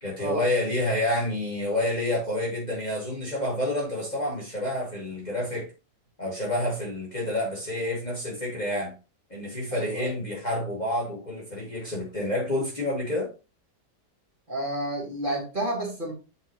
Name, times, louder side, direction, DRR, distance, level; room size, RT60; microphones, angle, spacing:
voice 1, 0.0-5.7 6.2-8.9 9.3-13.3, left 1 dB, 25° left, 1.9 m, -28 dB
voice 2, 9.7-10.1 14.5-16.1, right 1 dB, 30° right, 2.4 m, -30 dB
7.6 x 4.4 x 3.0 m
omnidirectional pair, 1.8 m